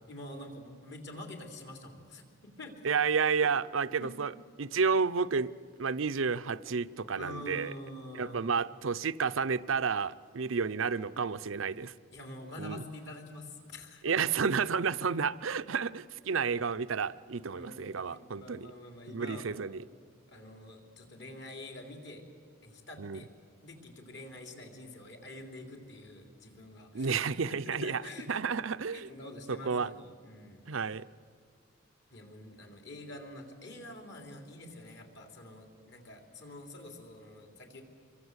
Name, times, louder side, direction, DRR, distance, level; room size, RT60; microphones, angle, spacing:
voice 1, 0.1-2.8 4.0-4.1 7.2-8.5 12.1-14.3 17.5-19.8 20.3-22.2 22.6-23.3 23.6-28.4 28.9-30.6 32.1-37.8, left 1 dB, 55° left, 4 dB, 3.6 m, -46 dB
voice 2, 2.8-4.3 4.6-5.5 5.8-7.7 8.1-11.9 12.6-12.8 14.0-18.7 19.1-19.8 23.0-23.2 26.9-28.0 28.3-29.1 29.5-29.9 30.7-31.1, right 5 dB, 75° right, 14 dB, 0.6 m, -31 dB
26.5 x 23.0 x 8.1 m, 2.2 s
head